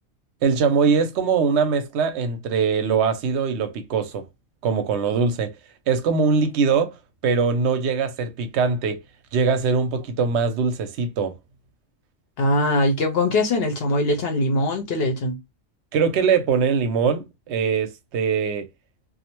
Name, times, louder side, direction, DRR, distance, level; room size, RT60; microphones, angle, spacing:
voice 1, 0.4-4.2 4.6-5.5 5.9-6.9 7.2-9.0 9.3-11.3 15.9-18.6, right 5 dB, 65° right, 0.8 m, -22 dB
voice 2, 12.4-15.4, left 1 dB, 60° left, 0.7 m, -22 dB
2.5 x 2.0 x 2.9 m
omnidirectional pair, 1.4 m